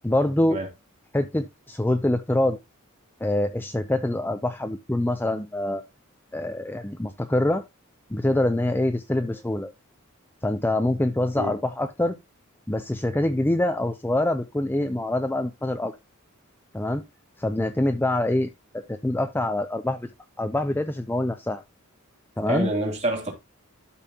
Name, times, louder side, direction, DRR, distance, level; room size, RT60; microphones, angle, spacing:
voice 1, 0.0-0.6 1.1-2.6 3.2-5.8 6.3-7.6 8.1-9.7 10.4-12.2 12.7-15.9 16.7-17.0 17.4-20.1 20.4-21.6 22.4-22.7, left 1 dB, 10° left, 0.5 m, -25 dB
voice 2, 22.5-23.3, right 1 dB, 30° right, 2.7 m, -27 dB
12.5 x 5.5 x 2.8 m
head